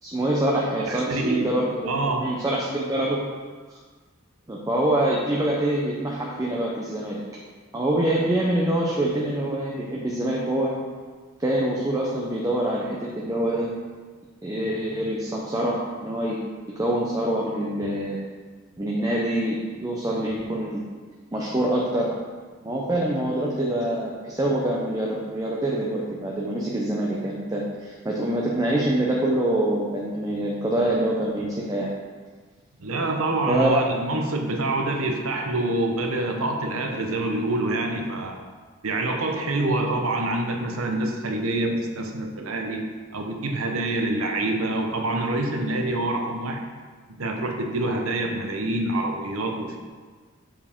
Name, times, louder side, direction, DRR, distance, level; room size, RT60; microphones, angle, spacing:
voice 1, 0.0-1.9 2.2-3.2 4.5-7.2 7.7-10.8 11.4-13.7 14.4-16.4 16.8-18.3 18.8-20.8 21.3-22.1 22.6-31.9 33.5-34.0, right 1 dB, 15° right, -3 dB, 0.6 m, -25 dB
voice 2, 0.9-1.6 1.8-2.3 32.8-38.4 38.8-42.9 43.1-46.6 47.1-49.8, right 2 dB, 85° right, 3 dB, 0.8 m, -26 dB
7.2 x 4.7 x 3.5 m, 1.5 s
head